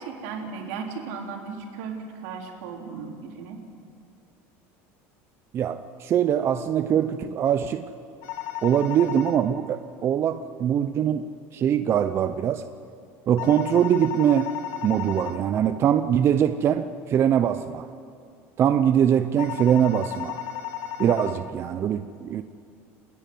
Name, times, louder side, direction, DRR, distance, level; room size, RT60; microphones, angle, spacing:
voice 1, 0.0-3.6, right 5 dB, 80° right, 2 dB, 3.6 m, -36 dB
voice 2, 5.5-7.9 8.6-12.6 13.3-14.5 14.8-17.9 18.6-20.4 21.0-22.4, right 9 dB, 40° right, 10 dB, 0.7 m, -22 dB
sound 1, 8.2-9.4 13.4-15.4 19.4-21.4, left 12 dB, 65° left, 1.9 m, -34 dB
29.5 x 10.5 x 9.4 m, 2.4 s
cardioid pair, 135°, 7 cm